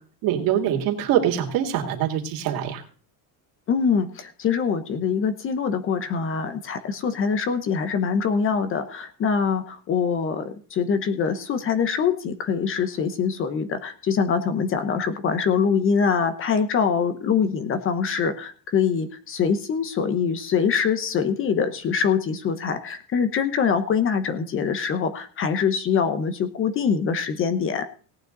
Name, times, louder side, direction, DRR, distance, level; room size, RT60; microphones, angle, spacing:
voice 1, 0.2-2.8, right 10 dB, 55° right, 3 dB, 2.7 m, -24 dB
voice 2, 3.7-27.9, left 6 dB, 30° left, 11 dB, 1.0 m, -24 dB
18.0 x 9.3 x 4.0 m, 0.40 s
cardioid pair, 165°, 40 cm